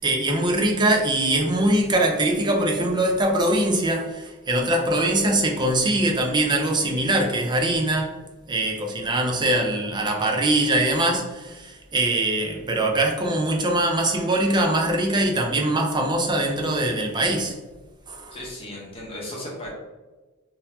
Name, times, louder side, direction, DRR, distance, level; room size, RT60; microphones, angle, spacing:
voice 1, 0.0-8.1 8.5-17.6 18.1-18.4, right 1 dB, 20° right, 1 dB, 0.5 m, -22 dB
voice 2, 18.3-19.7, left 1 dB, 25° left, -4 dB, 0.9 m, -36 dB
3.9 x 2.6 x 2.7 m, 1.2 s
head